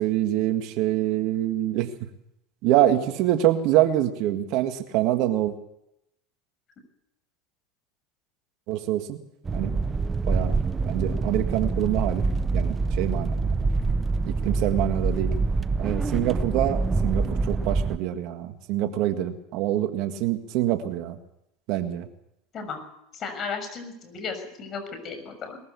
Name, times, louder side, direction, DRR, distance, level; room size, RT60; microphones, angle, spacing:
voice 1, 0.0-1.9 2.6-5.5 8.7-9.2 9.5-9.7 10.3-10.6 10.9-12.3 12.5-13.4 14.3-15.3 15.8-21.2 21.7-22.1, right 13 dB, 60° right, 8 dB, 1.8 m, -25 dB
sound 1, 9.5-18.0, right 3 dB, 20° right, 0.8 m, -25 dB
voice 2, 23.1-25.6, left 5 dB, 40° left, 7 dB, 6.6 m, -34 dB
21.0 x 15.0 x 8.4 m, 0.81 s
hypercardioid pair, 95°, 0 cm